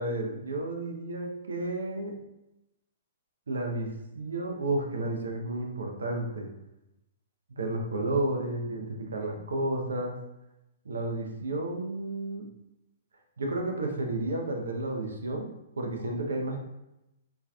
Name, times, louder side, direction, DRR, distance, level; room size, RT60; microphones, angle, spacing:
voice 1, 0.0-2.1 3.5-3.9 4.1-6.5 7.6-10.2 10.8-12.5 13.4-15.5 15.8-16.6, right 2 dB, 85° right, 2 dB, 0.7 m, -31 dB
4.4 x 2.8 x 2.3 m, 0.90 s
hypercardioid pair, 125°, 0 cm